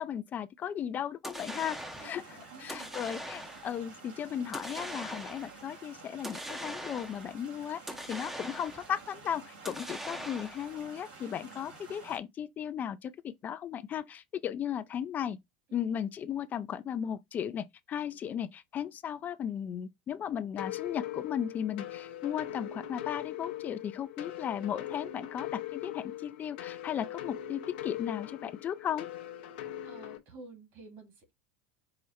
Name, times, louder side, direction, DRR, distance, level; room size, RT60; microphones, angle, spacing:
voice 1, 0.0-7.8 8.1-15.4 15.7-29.1, left 9 dB, 35° left, 0.3 m, -36 dB
sound 1, 1.2-2.2 2.7-3.7 4.5-5.6 6.2-7.3 7.9-9.0 9.7-10.7, equal, 5° right, 0.6 m, -41 dB
sound 2, 1.3-12.2, right 4 dB, 90° right, 2.0 m, -50 dB
voice 2, 2.0-2.9 10.2-10.4 15.7-15.8 29.9-31.3, right 3 dB, 55° right, 1.8 m, -51 dB
sound 3, 20.6-30.2, left 12 dB, 75° left, 0.7 m, -41 dB
4.8 x 2.1 x 4.1 m
supercardioid pair, 110°, 5 cm